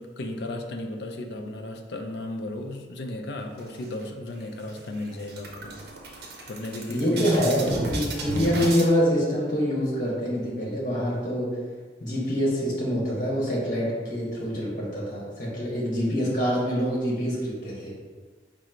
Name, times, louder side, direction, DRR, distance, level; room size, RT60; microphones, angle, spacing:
voice 1, 0.0-5.8 6.5-7.2 7.7-7.9, left 1 dB, 75° left, 3 dB, 0.4 m, -35 dB
sound 1, 3.6-4.3 4.7-4.8 5.1-8.9, right 2 dB, 65° right, 0.6 m, -33 dB
voice 2, 6.9-11.6 12.0-17.9, equal, 45° left, -5 dB, 1.0 m, -25 dB
3.7 x 2.0 x 4.3 m, 1.4 s
head